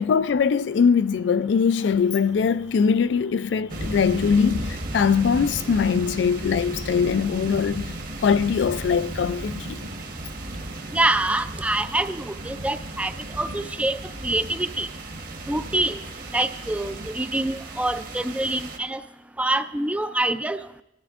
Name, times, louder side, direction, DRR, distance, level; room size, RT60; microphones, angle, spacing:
voice 1, 0.0-7.9 8.2-9.8, left 6 dB, 70° left, 0.3 m, -22 dB
sound 1, 3.7-18.8, right 1 dB, 50° right, 1.2 m, -35 dB
voice 2, 10.9-14.9 15.5-16.0 16.3-19.0 19.4-20.6, right 2 dB, 5° right, 0.3 m, -25 dB
19.5 x 13.0 x 2.5 m
head